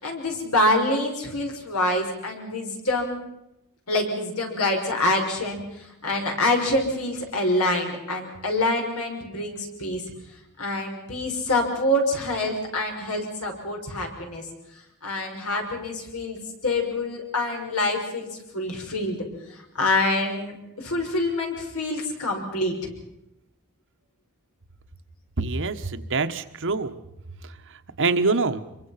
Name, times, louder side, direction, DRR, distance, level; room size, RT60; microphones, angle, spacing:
voice 1, 0.0-3.2 3.9-10.0 10.6-14.4 15.0-18.3 18.5-19.2 19.7-22.7, left 1 dB, 75° left, 2 dB, 6.0 m, -26 dB
voice 2, 25.4-27.0 28.0-28.6, right 3 dB, 60° right, 8 dB, 1.4 m, -24 dB
26.0 x 23.5 x 5.9 m, 0.86 s
head